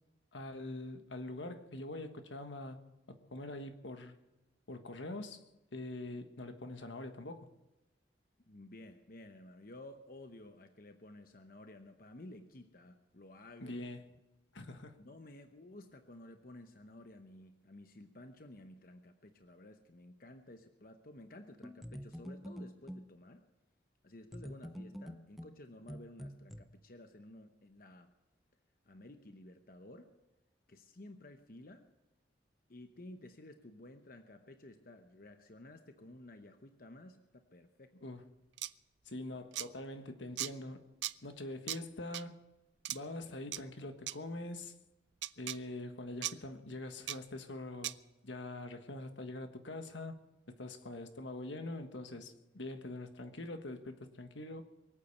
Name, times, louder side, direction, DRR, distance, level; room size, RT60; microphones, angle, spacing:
voice 1, 0.3-2.8 3.1-4.1 4.7-5.4 5.7-7.5 13.6-14.0 14.5-15.0 38.0-38.2 39.1-40.9 41.2-42.4 42.9-44.7 45.4-47.9 48.2-50.2 50.6-54.6, left 2 dB, 80° left, 1.5 m, -44 dB
voice 2, 8.5-13.8 15.0-23.4 24.0-28.1 28.9-30.1 30.7-31.9 32.7-38.0, left 1 dB, 50° left, 0.9 m, -54 dB
sound 1, 21.6-23.1 24.3-26.6, equal, ahead, 0.7 m, -46 dB
sound 2, 38.6-38.7 39.5-39.7 40.4-40.5 41.0-41.1 41.7-41.8 42.1-42.2 42.8-43.0 43.5-43.6 44.1-44.2 45.2-45.6 46.2-46.3 47.1-47.2 47.8-47.9, right 14 dB, 70° right, 0.5 m, -37 dB
23.0 x 8.7 x 6.7 m
head